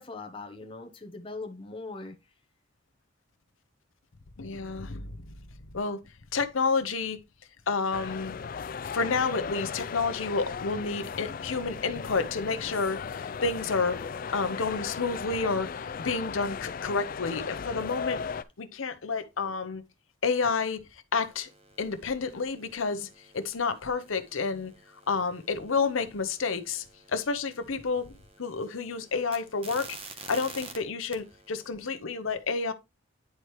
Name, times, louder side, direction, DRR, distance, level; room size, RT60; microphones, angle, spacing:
voice 1, 0.0-2.2, left 3 dB, 25° left, 0.9 m, -40 dB
voice 2, 4.4-5.1 5.7-6.0 6.3-7.2 7.7-8.4 8.9-14.0 14.3-15.7 16.0-18.2 18.6-19.8 20.2-20.8 21.1-21.5 21.8-23.1 23.3-24.7 25.1-28.1 28.4-29.9 30.3-32.7, left 4 dB, 75° left, 0.8 m, -30 dB
sound 1, 7.9-18.4, left 6 dB, 40° left, 0.3 m, -36 dB
sound 2, 21.2-30.8 31.1-31.7, right 3 dB, 30° right, 1.1 m, -50 dB
9.8 x 4.4 x 3.1 m
head